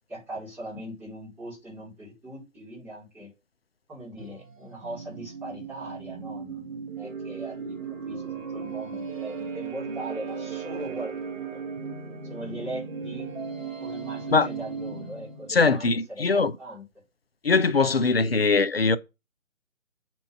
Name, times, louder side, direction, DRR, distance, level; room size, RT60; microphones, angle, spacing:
voice 1, 0.1-3.3 3.9-11.6 12.3-13.4 13.8-16.8, right 1 dB, 5° right, 4.3 m, -40 dB
sound 1, 4.2-15.6, right 5 dB, 65° right, 1.4 m, -36 dB
voice 2, 15.5-16.5 17.4-19.0, left 4 dB, 45° left, 0.7 m, -21 dB
7.7 x 4.6 x 5.4 m
figure-of-eight pair, 150°, 41 cm